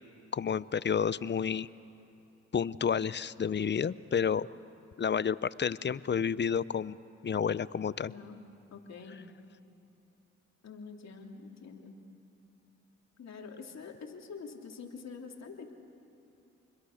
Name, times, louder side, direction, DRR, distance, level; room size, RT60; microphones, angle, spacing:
voice 1, 0.3-1.7 2.5-4.5 5.0-7.0 7.2-8.1, left 7 dB, 35° left, 18 dB, 0.7 m, -30 dB
voice 2, 8.0-8.4 8.7-9.2 10.6-12.0 13.2-15.7, left 5 dB, 60° left, 2 dB, 3.0 m, -46 dB
29.5 x 22.0 x 6.5 m, 3.0 s
supercardioid pair, 50°, 30 cm